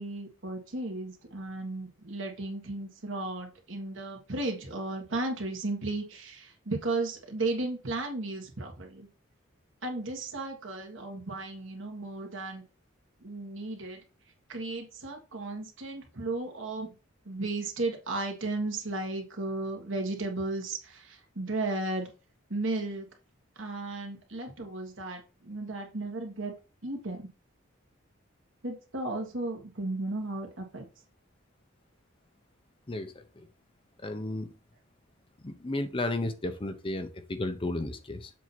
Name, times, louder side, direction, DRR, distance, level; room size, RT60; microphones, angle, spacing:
voice 1, 0.0-9.1 9.8-12.6 13.2-14.0 14.5-16.9 17.3-22.1 22.5-23.1 23.6-26.5 26.8-27.3 28.6-30.9, right 2 dB, 70° right, 2 dB, 1.7 m, -34 dB
voice 2, 32.9-33.5 34.0-34.5 35.4-38.3, left 2 dB, 25° left, 8 dB, 0.7 m, -33 dB
7.4 x 2.8 x 5.9 m, 0.33 s
head